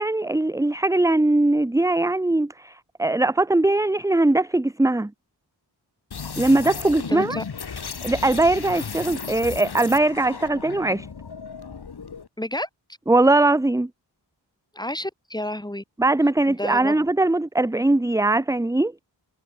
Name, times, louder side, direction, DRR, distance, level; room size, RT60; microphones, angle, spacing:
voice 1, 0.0-5.1 6.4-7.4 8.0-11.1 13.1-13.9 16.0-18.9, right 2 dB, 5° right, 0.6 m, -20 dB
sound 1, 6.1-12.3, left 5 dB, 60° left, 1.7 m, -35 dB
voice 2, 7.1-7.4 12.4-12.7 14.7-15.8 16.5-17.0, left 1 dB, 10° left, 1.6 m, -30 dB
wide cardioid pair, 85°, 45 cm